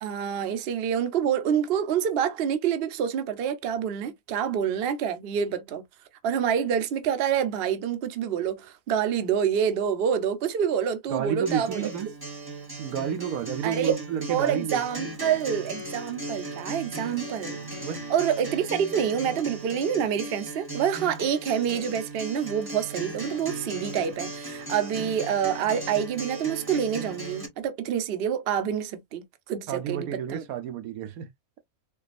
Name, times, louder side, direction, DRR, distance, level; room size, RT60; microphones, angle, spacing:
voice 1, 0.0-5.8 6.2-11.9 13.6-13.9 14.3-29.2 29.5-30.4, right 8 dB, 55° right, 0.7 m, -27 dB
voice 2, 11.1-12.1 12.8-14.8 17.8-18.1 29.7-31.3, right 8 dB, 75° right, 1.0 m, -30 dB
Acoustic guitar, 11.5-27.5, right 2 dB, 15° right, 1.0 m, -37 dB
4.5 x 2.3 x 2.4 m
omnidirectional pair, 1.5 m